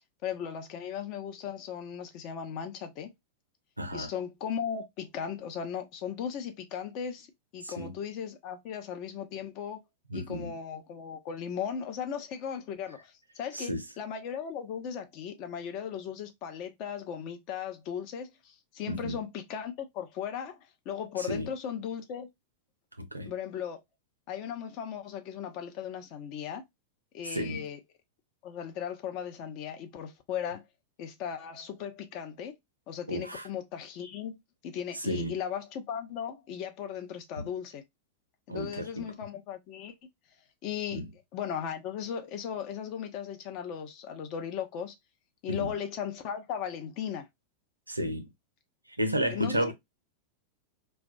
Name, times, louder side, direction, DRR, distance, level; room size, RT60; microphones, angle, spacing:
voice 1, 0.2-3.1 3.9-7.3 7.5-9.8 10.1-20.6 20.9-22.3 23.3-23.8 24.3-26.6 27.1-27.8 28.4-30.6 31.0-32.5 32.9-34.4 34.6-37.8 38.5-39.9 40.6-41.0 41.3-44.9 45.4-47.3 49.3-49.7, left 8 dB, 40° left, 0.5 m, -37 dB
voice 2, 3.8-4.1 7.6-7.9 10.1-10.5 13.5-13.8 18.9-19.2 21.2-21.5 23.0-23.3 27.2-27.7 33.1-33.5 34.9-35.3 37.4-37.5 38.5-39.1 40.9-41.1 45.5-45.7 47.9-48.3 49.0-49.7, equal, 85° right, 0.4 m, -32 dB
2.2 x 2.2 x 2.5 m
figure-of-eight pair, 90°, 0 cm